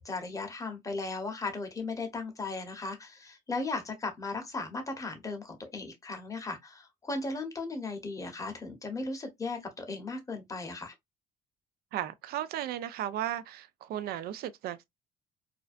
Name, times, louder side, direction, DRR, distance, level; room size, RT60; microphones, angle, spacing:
voice 1, 0.0-10.9, left 3 dB, 20° left, 0.8 m, -36 dB
voice 2, 11.9-14.9, right 11 dB, 65° right, 0.4 m, -35 dB
2.5 x 2.1 x 2.3 m
cardioid pair, 110°, 17 cm